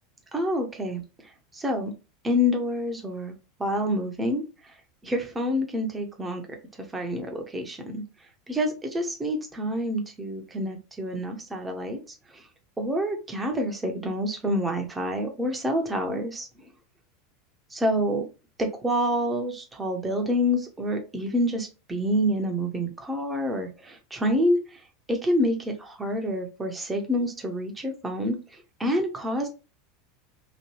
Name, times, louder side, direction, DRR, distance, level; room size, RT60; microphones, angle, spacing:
voice 1, 0.3-1.0 1.5-1.9 2.2-3.3 3.6-4.4 5.0-6.4 6.9-8.0 8.5-12.0 12.8-16.5 17.7-18.2 18.6-24.6 25.1-28.4 28.8-29.5, equal, 15° right, 3 dB, 0.9 m, -27 dB
3.1 x 2.6 x 3.0 m, 0.31 s
figure-of-eight pair, 80°, 0 cm